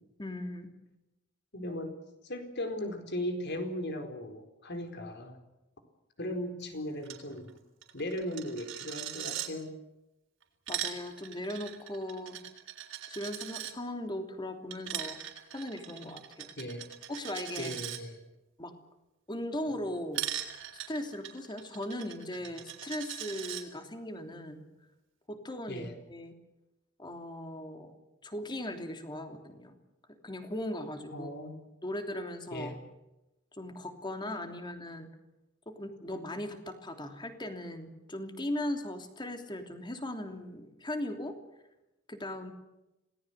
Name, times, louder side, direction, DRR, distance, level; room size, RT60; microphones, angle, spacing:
voice 1, 0.2-0.7 10.7-12.4 13.1-15.2 15.5-16.5 17.1-17.8 18.6-18.7 19.3-20.2 20.9-24.6 25.3-26.3 27.0-27.9 28.2-29.8 30.1-31.3 31.8-32.8 33.6-35.1 35.7-41.4 42.1-42.5, left 1 dB, 25° left, 6 dB, 3.1 m, -38 dB
voice 2, 1.5-1.9 2.2-5.4 6.2-7.5 7.9-9.8 16.6-16.8 17.6-18.3 25.7-25.9 31.1-31.6 32.5-32.8, left 1 dB, 60° left, 6 dB, 4.5 m, -37 dB
Coin (dropping), 7.0-7.2 7.5-7.6 7.8-9.5 10.4-13.7 14.7-18.0 20.1-23.6, right 11 dB, 70° right, 3.7 m, -40 dB
27.5 x 19.0 x 8.2 m, 0.96 s
head